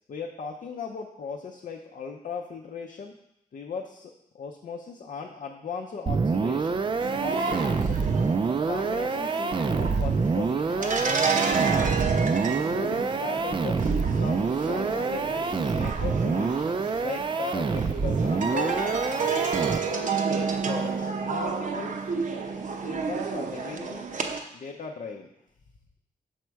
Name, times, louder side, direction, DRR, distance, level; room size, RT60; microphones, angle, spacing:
voice 1, 0.1-3.1 3.5-6.8 7.2-8.0 8.7-16.6 17.0-18.8 19.1-19.4 19.7-22.0 22.8-24.1 24.5-25.3, left 5 dB, 65° left, 1 dB, 0.6 m, -38 dB
sound 1, 6.1-20.1, right 4 dB, 35° right, 0.4 m, -27 dB
sound 2, 7.0-24.4, right 5 dB, 60° right, 0.7 m, -30 dB
6.2 x 4.3 x 4.6 m, 0.81 s
wide cardioid pair, 95°, 15 cm